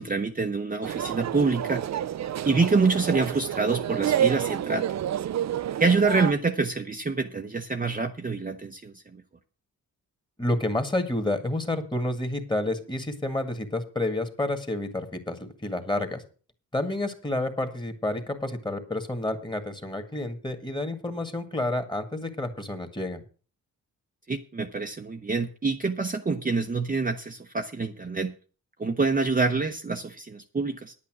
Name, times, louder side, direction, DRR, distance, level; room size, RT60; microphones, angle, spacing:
voice 1, 0.0-1.8 2.4-5.0 5.8-9.2 24.3-28.3 28.8-30.9, right 4 dB, 25° right, 4 dB, 0.8 m, -26 dB
sound 1, 0.8-6.3, right 10 dB, 50° right, 0.5 m, -29 dB
voice 2, 10.4-16.2 16.7-23.2, left 1 dB, 15° left, 7 dB, 1.9 m, -29 dB
10.0 x 8.5 x 6.1 m, 0.38 s
cardioid pair, 100°, 34 cm